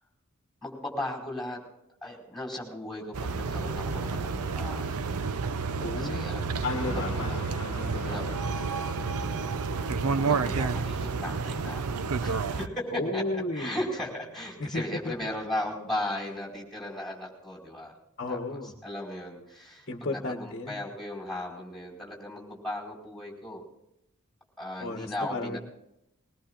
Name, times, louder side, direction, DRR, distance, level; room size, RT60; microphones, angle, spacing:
voice 1, 0.6-1.6 2.0-5.1 5.9-6.5 6.8-7.4 8.1-8.2 10.2-13.2 13.5-17.9 18.3-23.6 24.6-25.6, left 1 dB, ahead, -2 dB, 5.0 m, -36 dB
sound 1, 3.1-12.7, right 4 dB, 75° right, 0.6 m, -30 dB
voice 2, 5.8-6.3 6.6-8.3 12.9-13.8 14.6-15.1 18.2-18.7 19.9-20.8 24.8-25.6, left 2 dB, 45° left, 3 dB, 1.2 m, -34 dB
Guitar, 6.6-16.2, left 4 dB, 65° left, 1.1 m, -48 dB
21.5 x 21.0 x 2.5 m, 0.81 s
head